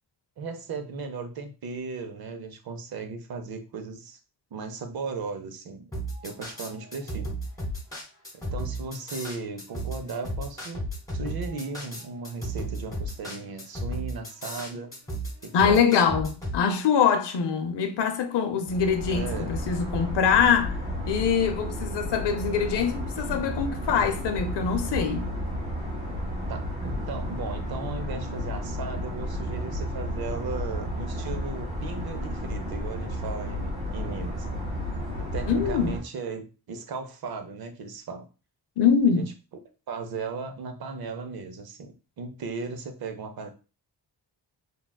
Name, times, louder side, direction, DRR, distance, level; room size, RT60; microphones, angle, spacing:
voice 1, 0.4-4.2 4.5-5.9 6.2-7.3 8.3-10.8 11.1-15.0 15.4-15.9 19.1-19.5 26.5-34.5 35.2-38.3 39.1-39.2 39.9-43.5, right 4 dB, 60° right, 0.6 m, -36 dB
sound 1, 5.9-16.6, right 1 dB, 10° left, 1.0 m, -34 dB
voice 2, 15.5-20.8 21.1-25.3 35.5-35.9 38.8-39.3, left 7 dB, 75° left, 0.6 m, -24 dB
sound 2, 18.7-36.0, equal, 15° right, 0.7 m, -32 dB
3.4 x 2.3 x 2.2 m
wide cardioid pair, 170°, 42 cm